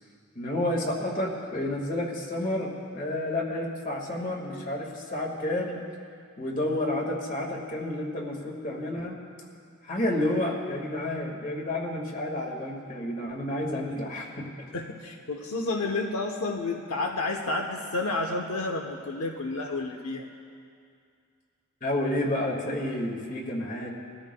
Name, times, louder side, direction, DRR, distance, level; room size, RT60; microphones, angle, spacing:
voice 1, 0.3-5.8 6.4-9.1 9.8-14.4 21.8-24.0, left 1 dB, 35° left, 0 dB, 1.8 m, -30 dB
voice 2, 14.7-20.3, left 2 dB, 80° left, 2 dB, 0.9 m, -30 dB
22.0 x 14.0 x 2.2 m, 2.4 s
head